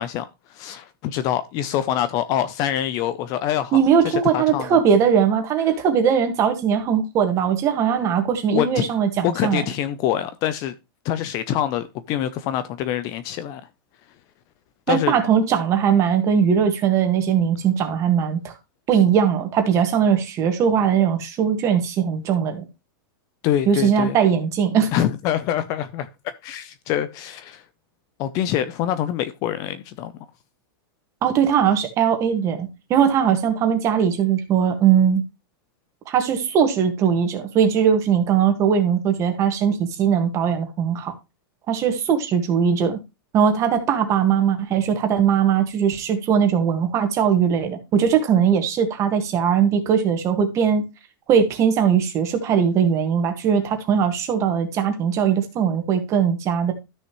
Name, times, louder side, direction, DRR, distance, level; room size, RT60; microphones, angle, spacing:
voice 1, 0.0-4.8 8.5-8.9 9.2-10.7 11.0-13.6 14.9-15.1 23.4-24.2 24.9-26.1 26.4-27.6 28.2-30.1, left 11 dB, 30° left, 0.5 m, -25 dB
voice 2, 3.7-9.6 14.9-18.5 18.9-22.6 23.7-24.9 31.2-35.2 36.1-41.1 41.7-43.0 43.3-50.9 51.3-56.7, right 7 dB, 25° right, 1.7 m, -20 dB
13.0 x 6.4 x 3.1 m
supercardioid pair, 165°, 12 cm